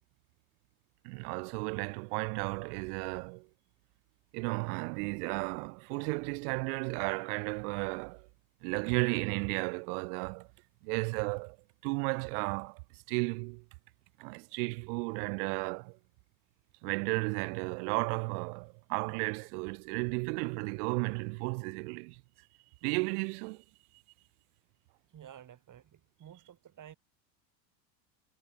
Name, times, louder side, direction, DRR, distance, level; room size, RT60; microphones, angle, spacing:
voice 1, 1.0-3.5 4.3-8.3 8.6-10.5 10.8-11.6 11.8-12.8 13.1-13.6 14.2-16.0 16.8-22.2 22.8-23.6, right 31 dB, 65° right, 1.1 m, -34 dB
voice 2, 25.1-27.0, right 10 dB, 40° right, 6.7 m, -52 dB
hypercardioid pair, 90°, 49 cm